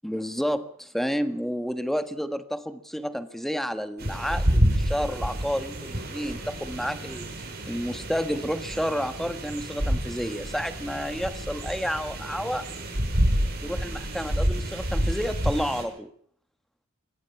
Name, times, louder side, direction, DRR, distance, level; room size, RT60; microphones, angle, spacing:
voice 1, 0.0-7.3 7.7-12.6 13.6-16.1, equal, ahead, 9 dB, 1.5 m, -30 dB
sound 1, 4.0-15.8, equal, 50° right, 6.4 m, -28 dB
24.5 x 18.0 x 5.9 m, 0.63 s
head